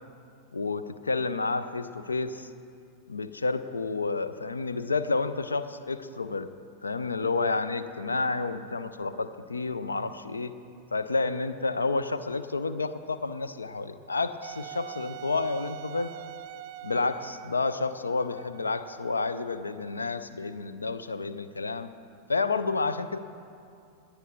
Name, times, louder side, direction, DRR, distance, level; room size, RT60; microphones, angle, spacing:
voice 1, 0.5-2.5 3.1-6.5 6.8-10.5 10.9-16.1 16.8-21.9 22.3-23.2, left 3 dB, 75° left, 12 dB, 0.5 m, -30 dB
Wind instrument woodwind instrument, 14.4-20.1, right 14 dB, 50° right, 0.4 m, -44 dB
18.5 x 9.8 x 4.4 m, 2.5 s
figure-of-eight pair, 90°, 0 cm